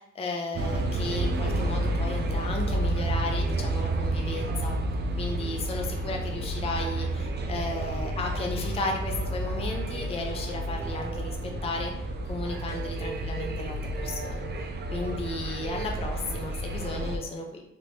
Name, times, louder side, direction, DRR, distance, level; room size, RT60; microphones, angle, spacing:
voice 1, 0.0-4.8 5.2-11.9 12.3-14.5 14.9-17.6, left 2 dB, 20° left, 2 dB, 0.5 m, -34 dB
sound 1, 0.5-17.2, right 1 dB, 35° right, 0.5 m, -30 dB
3.3 x 2.9 x 2.7 m, 0.84 s
cardioid pair, 90°, 30 cm